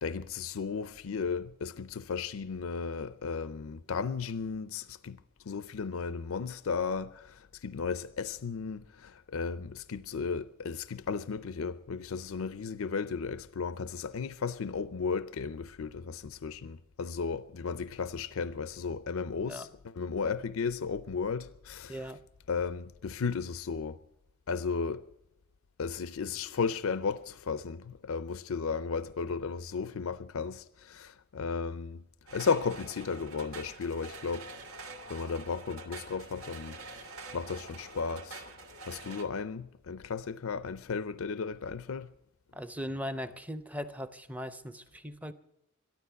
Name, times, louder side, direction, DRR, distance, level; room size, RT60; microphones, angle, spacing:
voice 1, 0.0-5.2 5.5-22.0 22.5-24.0 24.5-25.0 25.8-32.0 32.3-34.5 35.1-38.5 38.8-42.1, left 5 dB, 75° left, 0.5 m, -34 dB
voice 2, 19.4-19.7 21.9-22.2 42.5-45.3, equal, 5° right, 0.6 m, -39 dB
sound 1, 32.3-39.3, right 3 dB, 80° right, 1.5 m, -46 dB
13.5 x 12.0 x 8.0 m
head